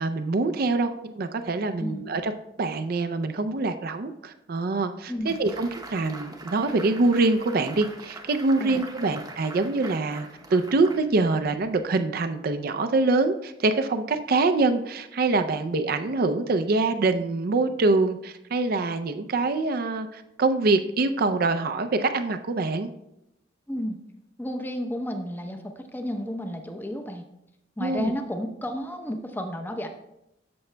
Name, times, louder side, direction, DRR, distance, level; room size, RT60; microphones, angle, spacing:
voice 1, 0.0-2.3 2.6-22.9 27.8-28.1, right 3 dB, 55° right, 9 dB, 0.4 m, -25 dB
sound 1, 5.3-11.7, right 2 dB, 20° right, 0.8 m, -43 dB
voice 2, 24.4-27.2 27.8-29.9, equal, 10° left, 4 dB, 0.7 m, -32 dB
13.0 x 6.9 x 2.2 m, 0.86 s
head